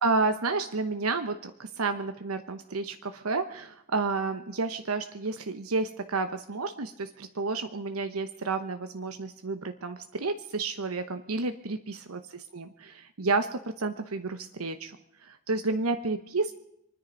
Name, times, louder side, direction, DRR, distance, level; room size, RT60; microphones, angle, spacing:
voice 1, 0.0-14.9 15.2-16.5, right 3 dB, 85° right, 8 dB, 1.0 m, -31 dB
26.5 x 10.5 x 5.3 m, 0.81 s
head